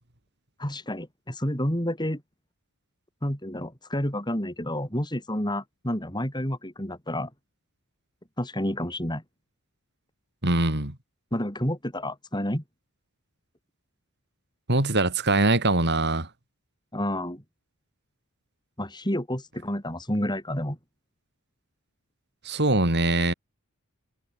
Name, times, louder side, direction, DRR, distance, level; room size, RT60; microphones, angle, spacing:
voice 1, 0.6-2.2 3.2-7.3 8.4-9.2 11.3-12.6 16.9-17.4 18.8-20.8, left 1 dB, 20° left, 7.5 m, -29 dB
voice 2, 10.4-11.0 14.7-16.3 22.4-23.3, right 2 dB, 50° right, 4.6 m, -22 dB
head